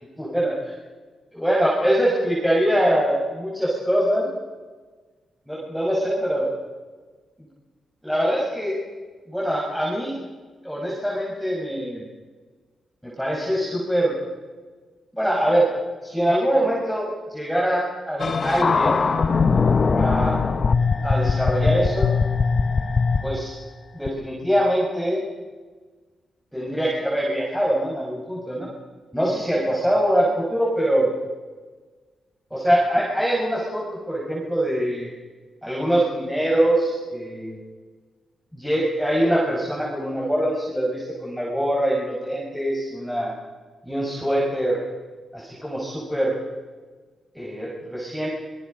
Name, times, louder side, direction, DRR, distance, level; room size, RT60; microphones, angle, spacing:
voice 1, 0.2-0.5 1.3-4.3 5.5-6.5 8.0-8.8 9.3-10.2 10.6-12.0 13.0-14.1 15.2-15.7 16.0-19.6 20.0-20.3 21.0-22.1 23.2-23.5 23.9-25.2 26.5-28.7 29.1-31.1 32.5-35.1 35.6-37.6 38.5-43.3 43.8-44.8 45.3-46.4 47.3-48.3, equal, ahead, -5 dB, 5.3 m, -23 dB
sound 1, 18.2-23.5 24.1-24.2, left 4 dB, 40° left, 1.0 m, -21 dB
26.5 x 21.5 x 5.2 m, 1.4 s
cardioid pair, 105°, 0 cm